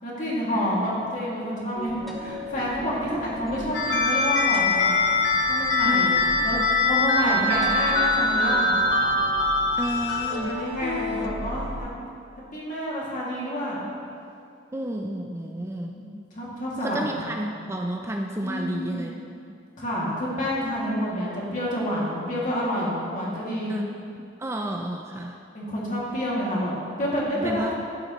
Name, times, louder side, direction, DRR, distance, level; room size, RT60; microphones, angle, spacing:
voice 1, 0.0-4.9 5.5-6.2 6.4-8.7 10.2-11.9 12.5-13.8 16.0-17.2 18.4-19.0 19.8-23.7 25.5-26.7 27.0-27.7, equal, 45° left, -6 dB, 2.4 m, -29 dB
sound 1, 1.7-11.8, left 1 dB, ahead, 1.1 m, -39 dB
voice 2, 3.1-3.8 5.8-6.6 7.2-7.7 9.8-10.6 14.7-16.0 16.8-19.1 23.7-25.4 27.3-27.7, right 1 dB, 15° right, 1 dB, 0.4 m, -32 dB
sound 2, 3.7-11.3, left 2 dB, 70° left, 0.8 m, -23 dB
11.5 x 9.7 x 3.1 m, 2.5 s
head